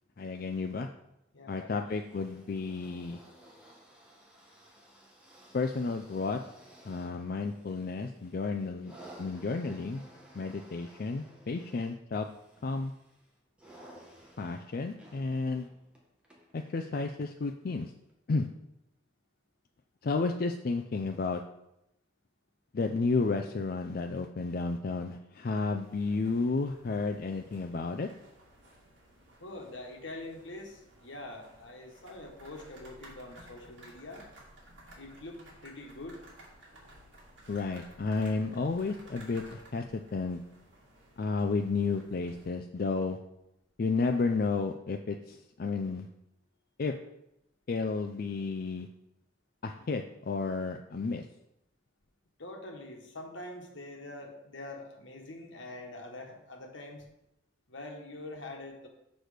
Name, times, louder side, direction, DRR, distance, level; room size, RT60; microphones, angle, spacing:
voice 1, 0.2-0.9 1.5-3.2 5.5-6.4 6.9-8.9 9.2-10.0 10.3-12.3 12.6-12.9 14.4-15.7 16.5-17.9 18.3-18.5 20.0-21.4 22.7-28.1 37.5-40.4 41.2-43.2 43.8-46.1 46.8-46.9 47.7-48.9 49.6-51.2, left 4 dB, 50° left, 5 dB, 0.4 m, -32 dB
voice 2, 1.3-1.8 29.4-34.3 35.0-36.2 52.4-57.0 57.7-58.9, left 2 dB, 80° left, 2 dB, 1.4 m, -44 dB
sound 1, 1.8-17.3 18.1-18.2, right 1 dB, 5° right, 1.5 m, -56 dB
sound 2, 25.8-42.5, right 1 dB, 70° right, 2.4 m, -56 dB
6.5 x 6.1 x 5.0 m, 0.84 s
head